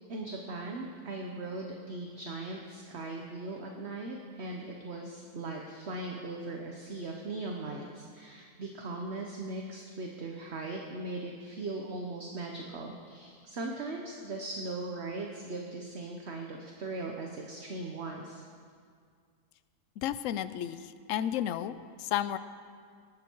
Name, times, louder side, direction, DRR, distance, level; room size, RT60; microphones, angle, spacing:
voice 1, 0.1-18.4, right 2 dB, 45° right, 1 dB, 1.2 m, -39 dB
voice 2, 20.0-22.4, left 11 dB, 65° left, 13 dB, 0.9 m, -33 dB
19.0 x 13.0 x 4.6 m, 2.2 s
omnidirectional pair, 1.7 m